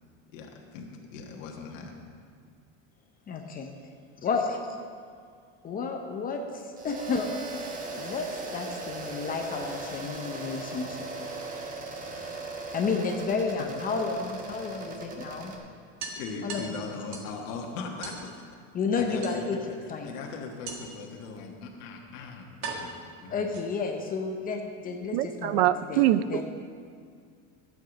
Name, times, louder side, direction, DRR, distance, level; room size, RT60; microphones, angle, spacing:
voice 1, 0.3-1.9 16.1-18.4 19.0-19.8 20.0-22.5 22.7-23.6 24.8-25.0, left 4 dB, 85° left, 1 dB, 1.4 m, -39 dB
voice 2, 3.3-3.7 4.2-4.6 5.6-7.3 7.6-7.7 8.0-8.3 8.5-11.1 12.7-15.5 16.4-16.6 18.7-19.6 19.9-20.1 23.3-26.4, left 4 dB, 25° left, 3 dB, 0.7 m, -31 dB
sound 1, 6.8-15.6, right 3 dB, 20° right, 1.1 m, -38 dB
sound 2, 12.0-13.0 14.5-14.6 15.0-15.1 15.4-15.5 16.0-17.4 18.0-18.3 19.2-19.8 20.7-21.1 21.9-22.0 22.6-24.0, right 4 dB, 45° right, 1.6 m, -40 dB
voice 3, 25.1-26.4, right 13 dB, 65° right, 15 dB, 0.5 m, -24 dB
11.5 x 8.1 x 5.2 m, 2.2 s
supercardioid pair, 150°, 37 cm